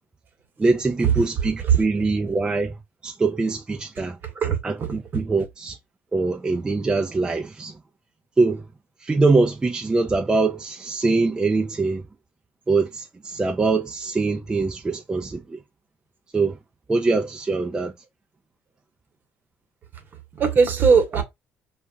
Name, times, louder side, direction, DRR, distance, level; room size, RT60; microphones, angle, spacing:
voice 1, 0.6-2.8 3.0-4.2 4.6-5.8 6.1-7.8 8.4-8.7 9.0-12.0 12.7-15.6 16.3-16.6 16.9-17.9, right 3 dB, 20° right, 0.4 m, -23 dB
voice 2, 4.2-4.9 20.4-21.2, right 6 dB, 45° right, 1.0 m, -19 dB
2.3 x 2.1 x 3.7 m
cardioid pair, 100°, 4 cm